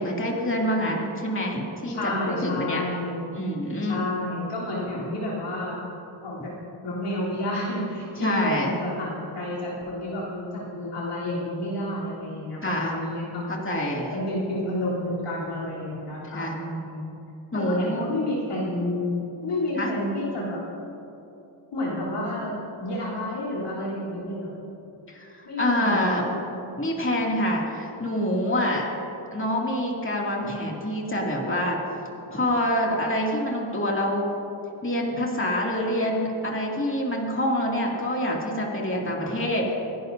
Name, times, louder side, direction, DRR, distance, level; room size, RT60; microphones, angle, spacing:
voice 1, 0.0-2.0 2.3-2.8 3.3-4.0 8.2-8.7 12.6-12.9 13.5-14.1 16.2-16.5 17.5-18.1 19.7-19.9 25.1-26.2 26.8-28.8 29.3-31.8 32.3-34.3 34.8-39.7, left 1 dB, 25° left, -2 dB, 2.4 m, -26 dB
voice 2, 1.9-3.3 3.8-5.8 6.2-6.5 6.8-13.6 14.1-17.1 17.5-20.6 21.7-22.5 22.8-24.5 25.5-26.4 39.2-39.4, left 1 dB, 90° left, -7 dB, 3.5 m, -30 dB
26.0 x 10.5 x 2.7 m, 2.9 s
cardioid pair, 60°, 50 cm